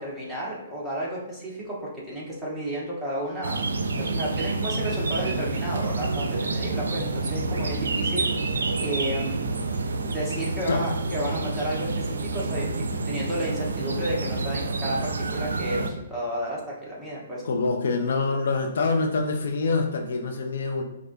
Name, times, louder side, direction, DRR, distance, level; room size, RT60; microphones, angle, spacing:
voice 1, 0.0-3.6 4.0-8.3 8.5-9.5 10.1-17.4, right 1 dB, 5° right, -8 dB, 1.3 m, -32 dB
sound 1, 3.4-15.9, right 3 dB, 80° right, 0.4 m, -28 dB
voice 2, 17.4-20.8, left 3 dB, 70° left, 4 dB, 0.5 m, -25 dB
4.8 x 2.4 x 2.7 m, 0.94 s
hypercardioid pair, 135°, 0 cm